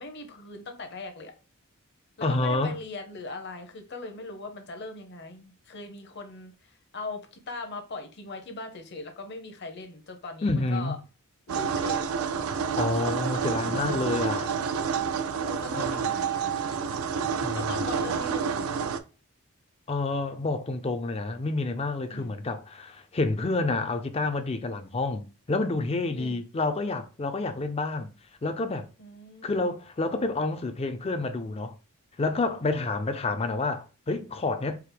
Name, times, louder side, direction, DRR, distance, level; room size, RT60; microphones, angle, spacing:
voice 1, 0.0-1.3 2.2-6.5 6.9-11.0 11.5-12.1 13.6-14.3 14.9-16.8 17.5-18.9 22.1-22.3 26.1-26.4 29.0-29.7 32.5-32.7, left 3 dB, 50° left, 0.8 m, -40 dB
voice 2, 2.2-2.8 10.4-11.0 12.8-14.5 15.7-16.1 17.4-17.7 19.9-28.1 28.4-28.9 29.4-31.8 32.2-34.8, left 3 dB, 25° left, 0.4 m, -29 dB
sound 1, 11.5-19.0, right 6 dB, 80° right, 0.4 m, -29 dB
4.6 x 2.0 x 3.3 m
head